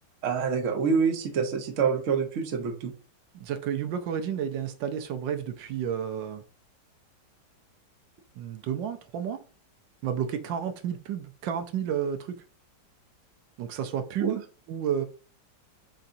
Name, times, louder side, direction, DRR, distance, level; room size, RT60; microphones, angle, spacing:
voice 1, 0.2-2.9 14.2-14.4, right 6 dB, 55° right, 1.0 m, -26 dB
voice 2, 3.3-6.4 8.4-9.4 10.0-12.4 13.6-14.4 14.7-15.1, right 8 dB, 80° right, 1.3 m, -31 dB
4.8 x 4.1 x 2.5 m
omnidirectional pair, 2.0 m